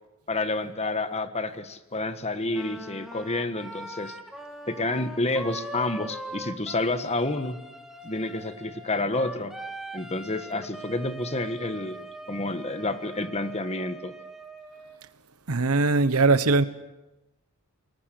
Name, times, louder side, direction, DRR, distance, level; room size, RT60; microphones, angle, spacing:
voice 1, 0.3-4.1 4.7-7.6 8.0-9.5 9.9-12.0 12.3-14.1, left 2 dB, 30° left, 1.5 m, -29 dB
Wind instrument woodwind instrument, 2.5-15.0, right 1 dB, ahead, 2.6 m, -41 dB
voice 2, 15.5-16.6, right 3 dB, 80° right, 1.2 m, -20 dB
29.0 x 21.0 x 7.8 m
head